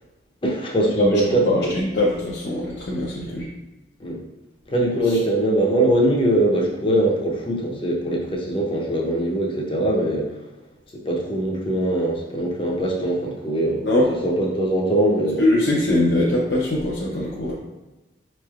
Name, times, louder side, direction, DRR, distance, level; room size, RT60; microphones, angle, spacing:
voice 1, 0.4-1.7 3.3-3.4 4.0-4.2 4.7-10.3 10.9-13.9 14.2-15.4, right 1 dB, 30° left, -1 dB, 0.7 m, -22 dB
voice 2, 1.0-3.5 13.8-14.1 15.4-17.5, left 1 dB, 65° left, -5 dB, 0.6 m, -22 dB
5.2 x 3.2 x 2.3 m, 1.1 s
head